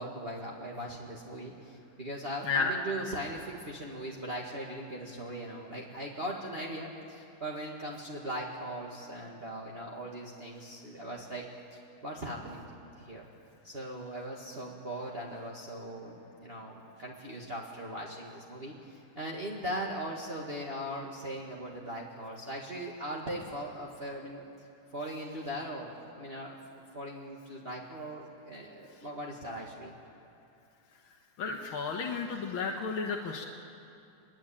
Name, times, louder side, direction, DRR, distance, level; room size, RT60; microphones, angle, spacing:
voice 1, 0.0-13.3 13.6-24.4 24.9-26.6 26.9-29.9, right 1 dB, 30° right, -3 dB, 2.1 m, -39 dB
voice 2, 31.4-33.4, left 4 dB, 70° left, 0 dB, 2.2 m, -32 dB
24.5 x 21.5 x 8.9 m, 2.8 s
omnidirectional pair, 2.3 m